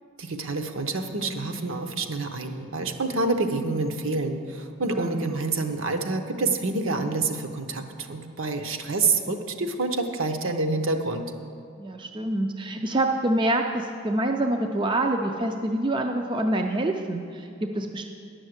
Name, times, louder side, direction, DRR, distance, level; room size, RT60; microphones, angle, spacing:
voice 1, 0.2-11.2, right 3 dB, 65° right, 5 dB, 0.8 m, -27 dB
voice 2, 11.8-18.1, right 1 dB, 20° right, 4 dB, 0.4 m, -26 dB
10.5 x 6.3 x 7.9 m, 2.5 s
head